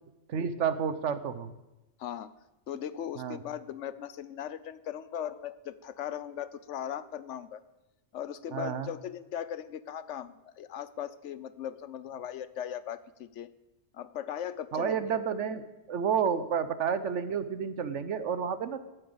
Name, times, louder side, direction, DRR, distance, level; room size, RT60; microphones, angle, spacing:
voice 1, 0.3-1.5 3.2-3.4 8.5-8.9 14.7-18.8, right 7 dB, 80° right, 12 dB, 1.2 m, -30 dB
voice 2, 2.0-2.3 2.7-7.6 8.1-13.5 13.9-15.0, left 10 dB, 75° left, 15 dB, 1.0 m, -38 dB
11.5 x 9.1 x 7.9 m, 1.0 s
omnidirectional pair, 1.2 m